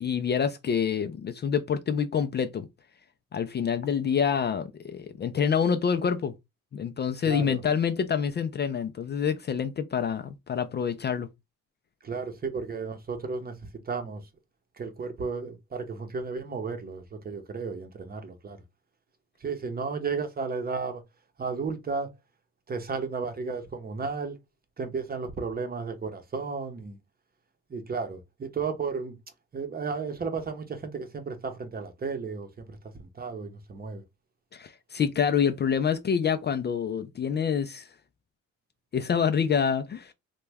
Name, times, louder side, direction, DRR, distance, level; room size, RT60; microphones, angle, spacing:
voice 1, 0.0-2.7 3.3-6.3 6.7-11.3 34.5-37.9 38.9-40.1, left 7 dB, 35° left, 0.4 m, -27 dB
voice 2, 7.2-7.6 12.0-13.5 13.9-14.2 14.8-18.6 19.4-21.0 21.4-22.2 22.7-24.4 24.8-27.0 27.7-29.2 29.5-34.0, right 4 dB, 30° right, 0.8 m, -33 dB
3.0 x 2.2 x 3.4 m
cardioid pair, 90°, 30 cm